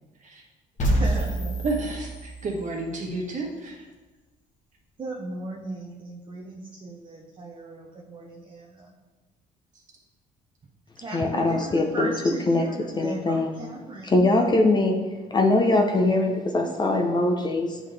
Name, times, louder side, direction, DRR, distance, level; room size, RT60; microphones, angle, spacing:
sound 1, 0.8-2.8, right 1 dB, 45° left, 1.2 m, -27 dB
voice 1, 0.9-1.6 5.0-8.9 11.0-14.3, right 2 dB, 30° right, -1 dB, 0.8 m, -36 dB
voice 2, 1.6-3.8, right 2 dB, 45° right, -1 dB, 1.6 m, -31 dB
voice 3, 11.1-12.1 12.5-12.6 13.0-13.5 14.0-15.0 15.3-17.8, left 2 dB, 25° left, 3 dB, 0.7 m, -22 dB
9.4 x 3.7 x 3.4 m, 1.2 s
cardioid pair, 110°, 17 cm